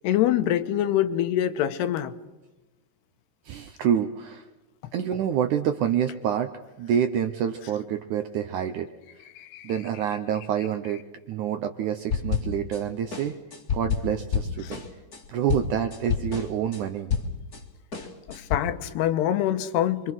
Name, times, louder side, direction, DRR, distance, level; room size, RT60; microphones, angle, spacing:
voice 1, 0.0-2.1 9.4-9.7 14.6-14.7 18.3-20.1, left 11 dB, 85° left, 10 dB, 3.1 m, -25 dB
voice 2, 3.5-4.5 4.9-6.5 6.8-8.9 9.6-11.0 11.3-13.4 13.7-14.8 15.3-17.1, right 9 dB, 75° right, 7 dB, 1.8 m, -27 dB
sound 1, 12.1-12.8 13.1-17.6 17.9-18.6, left 6 dB, 30° left, 1.8 m, -29 dB
28.5 x 24.0 x 6.3 m, 1.0 s
omnidirectional pair, 4.7 m